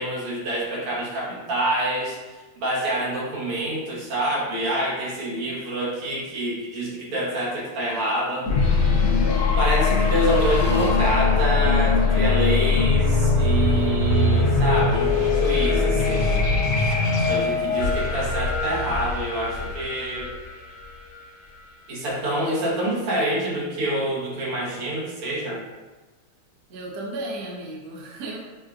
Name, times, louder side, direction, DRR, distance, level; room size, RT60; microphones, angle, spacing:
voice 1, 0.0-2.2 2.6-8.5 9.6-16.5 17.3-20.3 21.9-25.6, right 1 dB, 80° right, -5 dB, 2.0 m, -26 dB
sound 1, 8.5-21.2, left 4 dB, 75° left, 1.5 m, -21 dB
voice 2, 26.7-28.4, right 2 dB, 60° right, -3 dB, 1.0 m, -34 dB
6.3 x 2.2 x 2.4 m, 1.2 s
omnidirectional pair, 2.4 m